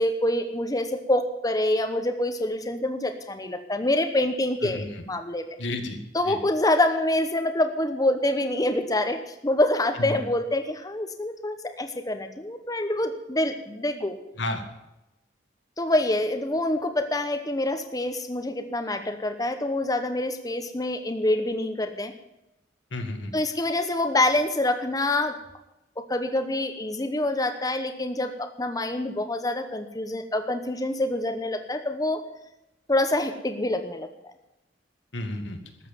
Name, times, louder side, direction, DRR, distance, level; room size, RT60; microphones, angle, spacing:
voice 1, 0.0-5.6 6.1-14.2 15.8-22.1 23.3-25.4 26.0-32.2 32.9-34.1, left 1 dB, 20° left, 7 dB, 1.0 m, -26 dB
voice 2, 4.6-5.0 5.6-6.0 6.2-6.4 10.0-10.2 14.4-14.6 22.9-23.4 35.1-35.6, left 1 dB, 85° left, 5 dB, 2.1 m, -31 dB
13.5 x 7.5 x 9.0 m, 0.92 s
head